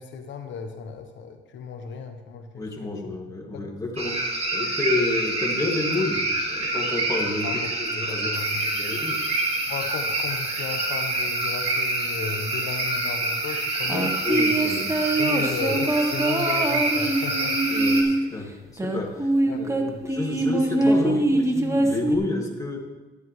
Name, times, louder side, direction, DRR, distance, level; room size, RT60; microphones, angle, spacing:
voice 1, 0.0-3.2 3.5-3.7 7.4-9.1 9.7-14.2 15.1-17.6 18.1-18.3 19.5-20.0 20.8-21.3, left 6 dB, 70° left, 5 dB, 1.1 m, -35 dB
voice 2, 2.5-8.3 8.8-9.2 14.3-15.0 17.7-22.8, left 2 dB, 15° left, 0 dB, 2.1 m, -30 dB
sound 1, 4.0-18.0, right 2 dB, 30° right, 2.3 m, -27 dB
sound 2, 13.9-18.2 18.8-22.2, right 2 dB, 15° right, 1.2 m, -23 dB
13.0 x 9.5 x 3.2 m, 1.2 s
cardioid pair, 90°, 20 cm